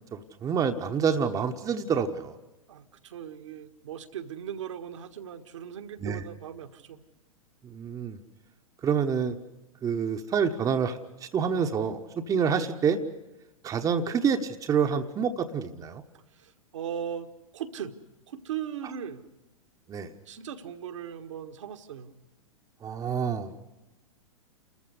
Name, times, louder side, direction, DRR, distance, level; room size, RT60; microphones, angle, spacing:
voice 1, 0.1-2.4 6.0-6.2 7.6-8.2 8.8-9.4 9.8-13.0 13.6-16.0 19.9-20.1 22.8-23.5, right 6 dB, 20° right, 6 dB, 1.1 m, -27 dB
voice 2, 2.7-7.0 16.3-17.9 18.3-19.2 20.3-22.1, right 8 dB, 60° right, 6 dB, 1.5 m, -38 dB
29.0 x 14.5 x 8.1 m, 1.1 s
figure-of-eight pair, 100°, 18 cm